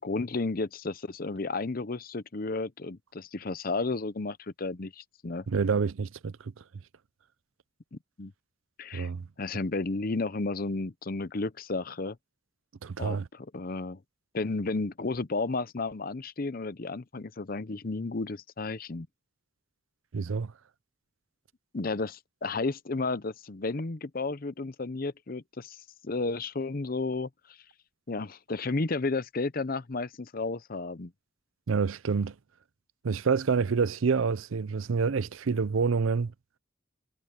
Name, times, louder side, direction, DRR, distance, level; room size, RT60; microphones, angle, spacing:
voice 1, 0.0-5.4 7.9-8.3 8.8-9.1 9.4-12.2 13.0-14.0 14.3-19.1 21.7-25.8 26.0-27.3 28.1-31.1, left 3 dB, 45° left, 0.7 m, -32 dB
voice 2, 5.5-6.5 8.9-9.3 12.8-13.3 20.1-20.5 31.7-32.3 33.0-36.3, right 5 dB, 80° right, 0.5 m, -27 dB
head